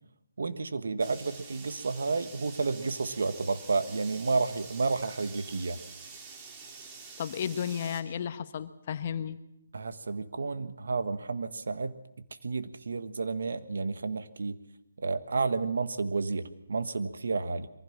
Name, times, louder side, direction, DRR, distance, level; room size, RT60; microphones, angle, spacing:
voice 1, 0.4-5.8 9.7-12.0 12.4-14.6 15.0-17.7, right 4 dB, 75° right, 11 dB, 1.5 m, -31 dB
sound 1, 1.0-8.0, right 5 dB, 20° right, 2.4 m, -47 dB
voice 2, 7.2-9.4, left 8 dB, 40° left, 11 dB, 1.2 m, -33 dB
23.0 x 15.5 x 7.4 m, 0.88 s
hypercardioid pair, 155°, 0 cm